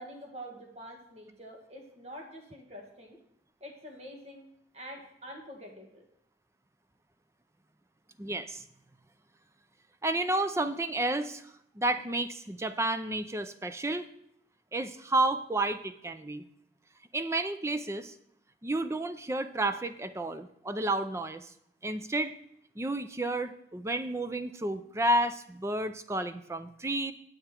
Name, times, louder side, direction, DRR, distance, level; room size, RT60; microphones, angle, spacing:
voice 1, 0.0-3.2 3.6-4.5 4.7-6.1, equal, 35° right, 1 dB, 1.8 m, -46 dB
voice 2, 8.2-8.6 10.0-11.4 11.8-14.1 14.7-16.4 17.1-18.1 18.6-21.5 21.8-22.3 22.8-27.1, right 2 dB, 15° right, 11 dB, 0.4 m, -31 dB
9.5 x 7.9 x 4.4 m, 0.74 s
head